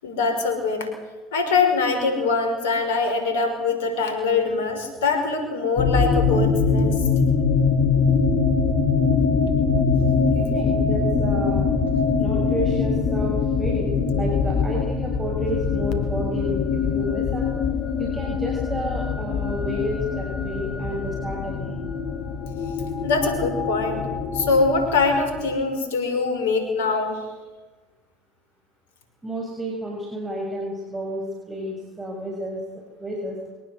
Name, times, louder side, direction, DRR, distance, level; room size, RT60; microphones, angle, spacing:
voice 1, 0.0-1.0 1.3-7.0 23.0-24.0 24.3-27.3, left 4 dB, 75° left, 6 dB, 5.7 m, -23 dB
sound 1, 5.8-25.6, left 5 dB, 55° left, 3.1 m, -23 dB
voice 2, 10.3-11.7 12.2-17.4 18.0-21.9 26.6-26.7 29.2-32.6 33.0-33.4, equal, 15° right, -1 dB, 6.9 m, -31 dB
24.0 x 19.0 x 8.3 m, 1.2 s
hypercardioid pair, 70°, 0 cm